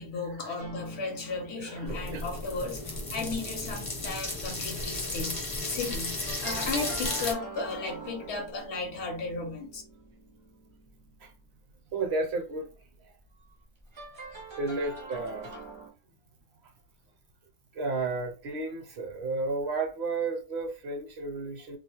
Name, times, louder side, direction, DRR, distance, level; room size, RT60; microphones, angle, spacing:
voice 1, 0.0-9.8, left 3 dB, 65° left, 0.8 m, -35 dB
sound 1, 0.6-4.9 5.1-11.5 13.8-15.9, right 3 dB, 35° right, 0.5 m, -45 dB
voice 2, 1.5-2.3 3.1-3.4 4.8-4.9 11.2-11.3 11.9-12.7 13.0-13.1 14.6-15.6 17.7-21.8, right 3 dB, 60° right, 0.8 m, -33 dB
sound 2, 1.9-7.3, left 2 dB, 35° left, 0.6 m, -34 dB
2.4 x 2.0 x 2.8 m
omnidirectional pair, 1.3 m